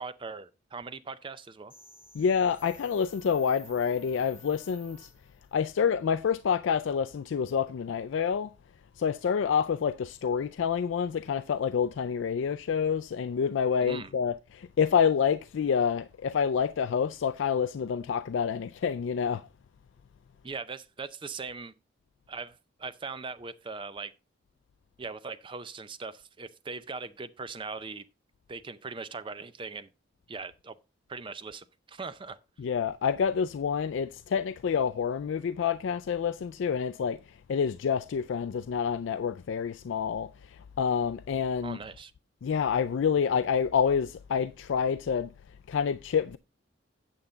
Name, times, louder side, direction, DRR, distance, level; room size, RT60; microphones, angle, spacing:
voice 1, 0.0-1.7 13.8-14.1 20.4-21.7 22.3-24.1 25.0-28.1 28.5-29.9 30.3-30.7 31.1-32.4 41.6-42.1, right 4 dB, 25° right, 0.5 m, -40 dB
sound 1, 1.7-5.6, left 1 dB, 10° left, 2.5 m, -53 dB
voice 2, 2.1-5.1 5.5-8.5 9.0-19.5 32.6-41.8 42.4-45.3 45.7-46.4, left 7 dB, 75° left, 0.3 m, -28 dB
8.9 x 7.0 x 3.8 m
head